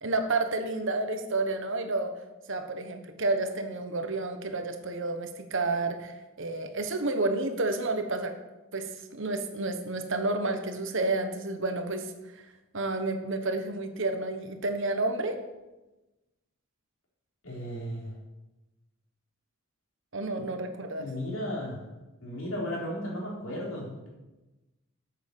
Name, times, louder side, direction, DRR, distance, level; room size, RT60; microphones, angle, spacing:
voice 1, 0.0-2.1 2.5-8.3 8.7-12.5 12.7-15.4 20.1-21.0, right 2 dB, 60° right, 7 dB, 1.2 m, -30 dB
voice 2, 17.4-18.1 20.4-20.5 21.0-21.8 22.2-24.1, equal, 70° left, -3 dB, 3.7 m, -35 dB
8.3 x 8.2 x 6.7 m, 1.1 s
head